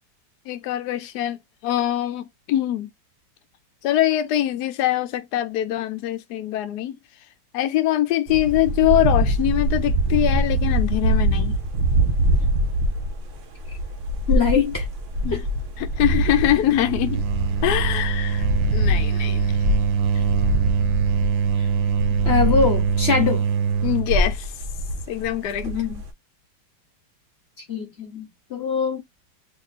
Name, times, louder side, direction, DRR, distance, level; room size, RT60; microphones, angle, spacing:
voice 1, 0.5-2.9 3.8-7.0 7.5-11.6 15.2-15.5 15.8-17.2 17.6-19.6 20.1-20.2 21.6-21.7 23.8-24.5 25.1-25.7, left 12 dB, 70° left, 1.0 m, -23 dB
sound 1, 8.3-23.3 23.7-26.1, right 1 dB, 55° right, 0.9 m, -24 dB
voice 2, 14.3-14.8 15.3-15.4 22.2-23.4 25.6-26.0 27.7-29.0, left 6 dB, 45° left, 0.9 m, -22 dB
sound 2, 16.4-24.1, right 7 dB, 80° right, 1.2 m, -23 dB
3.0 x 2.7 x 4.0 m
omnidirectional pair, 2.0 m